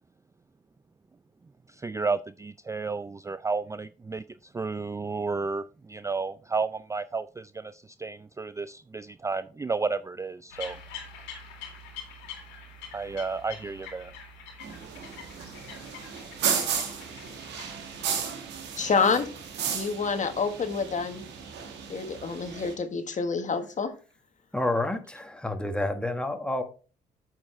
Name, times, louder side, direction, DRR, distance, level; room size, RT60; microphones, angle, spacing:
voice 1, 1.7-4.2 4.5-10.8 12.9-14.1, right 4 dB, 15° right, 14 dB, 0.4 m, -32 dB
sound 1, 10.5-18.0, left 6 dB, 80° left, 2.1 m, -45 dB
sound 2, 14.6-22.7, right 7 dB, 70° right, 1.6 m, -34 dB
voice 2, 18.8-19.3 19.7-21.2 21.9-23.9, left 5 dB, 45° left, 8 dB, 1.4 m, -27 dB
voice 3, 24.5-26.6, left 1 dB, 5° left, 6 dB, 1.5 m, -29 dB
8.7 x 6.5 x 3.2 m, 0.36 s
hypercardioid pair, 50°, 18 cm